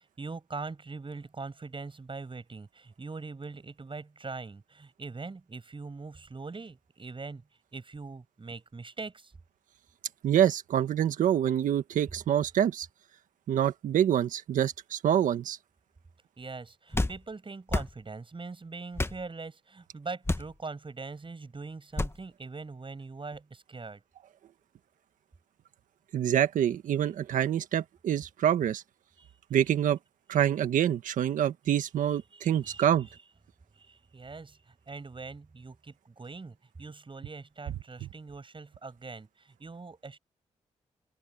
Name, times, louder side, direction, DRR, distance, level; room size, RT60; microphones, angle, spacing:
voice 1, 0.0-7.4 7.7-9.3 16.4-24.0 29.2-29.3 32.3-33.2 33.7-40.2, right 4 dB, 40° right, 7.8 m, -42 dB
voice 2, 10.2-12.9 13.5-15.6 26.1-28.8 29.5-30.0 30.3-33.1, right 10 dB, 85° right, 1.6 m, -26 dB
sound 1, 16.9-17.2 17.7-17.9 19.0-19.2 20.2-20.5 22.0-22.2, left 2 dB, 20° left, 1.5 m, -29 dB
open air
cardioid pair, 50°, 13 cm